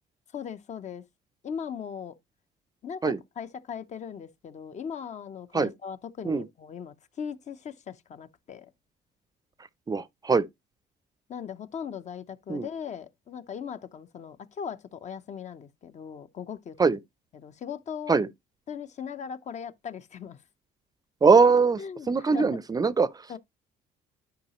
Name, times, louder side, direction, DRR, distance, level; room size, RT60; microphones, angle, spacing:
voice 1, 0.3-1.0 1.4-2.2 2.8-8.7 11.3-16.9 17.3-18.2 18.7-20.4 21.8-22.6 23.3-23.4, left 7 dB, 45° left, 0.7 m, -39 dB
voice 2, 9.9-10.4 12.5-12.7 16.8-17.0 18.1-18.3 21.2-21.8 22.1-23.1, right 4 dB, 20° right, 0.5 m, -21 dB
10.5 x 4.9 x 2.9 m
cardioid pair, 110°, 17 cm